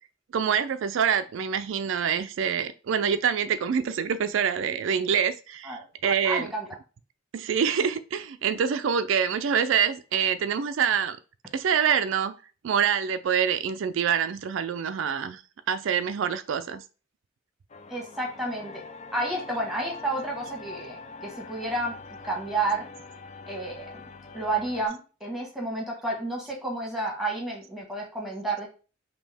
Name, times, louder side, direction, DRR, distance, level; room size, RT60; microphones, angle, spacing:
voice 1, 0.3-6.5 7.3-11.2 11.5-12.3 12.6-15.4 15.7-16.8, right 7 dB, 65° right, 0.3 m, -26 dB
voice 2, 6.2-6.7 17.9-18.8 19.1-21.9 22.2-22.9 23.5-24.0 24.3-28.7, right 2 dB, ahead, 1.3 m, -31 dB
sound 1, 17.7-24.9, left 3 dB, 35° left, 0.4 m, -44 dB
5.3 x 2.8 x 3.4 m
head